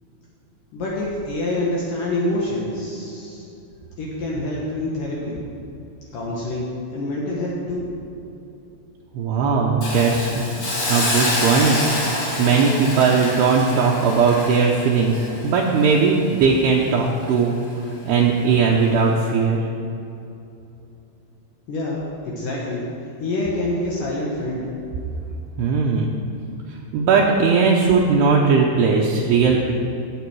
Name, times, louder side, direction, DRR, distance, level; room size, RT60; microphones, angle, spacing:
voice 1, 0.7-3.5 4.0-5.3 6.1-7.9 21.7-22.8 23.2-24.6, left 1 dB, 60° left, -5 dB, 2.6 m, -26 dB
voice 2, 9.1-10.5 10.9-11.8 12.1-17.5 18.0-19.6 25.6-26.1 26.9-29.7, right 5 dB, 75° right, -2 dB, 2.8 m, -18 dB
Hiss, 9.8-16.8 17.2-17.4, left 1 dB, 35° left, 2.0 m, -27 dB
16.5 x 8.0 x 4.7 m, 2.7 s
omnidirectional pair, 5.0 m